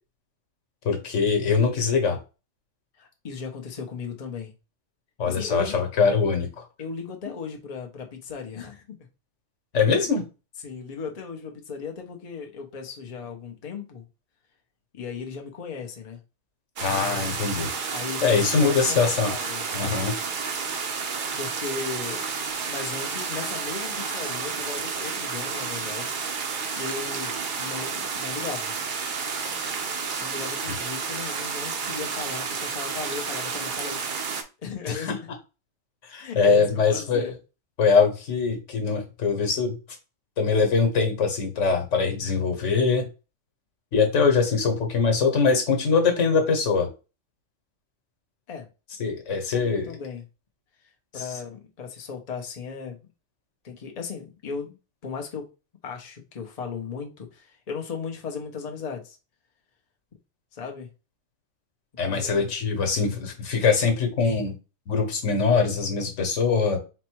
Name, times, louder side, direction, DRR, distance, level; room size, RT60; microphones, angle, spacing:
voice 1, 0.8-2.2 5.2-6.7 9.7-10.2 16.8-17.7 18.2-19.3 19.7-20.1 34.9-35.2 36.1-37.3 37.8-39.8 40.4-43.1 43.9-46.9 49.0-49.9 51.2-51.3 62.0-64.6 64.9-66.8, left 5 dB, 90° left, 4 dB, 1.4 m, -22 dB
voice 2, 2.9-4.5 5.3-5.8 6.8-9.0 10.6-14.0 14.9-16.2 17.9-20.0 21.4-22.3 22.7-26.2 26.7-28.8 30.2-34.0 34.6-35.3 36.2-37.4 48.5-48.7 49.5-50.2 51.1-53.0 53.6-55.5 55.8-59.2 60.5-60.9 62.0-62.5, left 5 dB, 40° left, 2 dB, 0.8 m, -36 dB
sound 1, 16.8-34.4, right 5 dB, 50° right, 0.7 m, -31 dB
4.3 x 2.2 x 4.5 m, 0.31 s
omnidirectional pair, 1.2 m